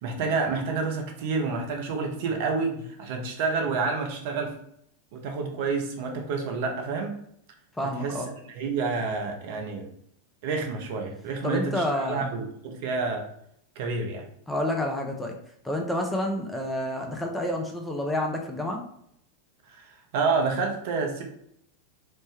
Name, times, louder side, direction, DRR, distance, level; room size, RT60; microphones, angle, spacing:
voice 1, 0.0-4.5 5.1-7.1 8.0-8.2 8.5-9.8 10.4-13.3 13.8-14.2 19.7-19.8 20.1-21.2, right 4 dB, 50° right, 2 dB, 0.6 m, -28 dB
voice 2, 7.7-8.3 11.4-12.3 14.5-15.3 15.6-18.8, left 1 dB, 5° left, 2 dB, 0.5 m, -29 dB
3.1 x 2.1 x 3.2 m, 0.71 s
figure-of-eight pair, 90°, 0 cm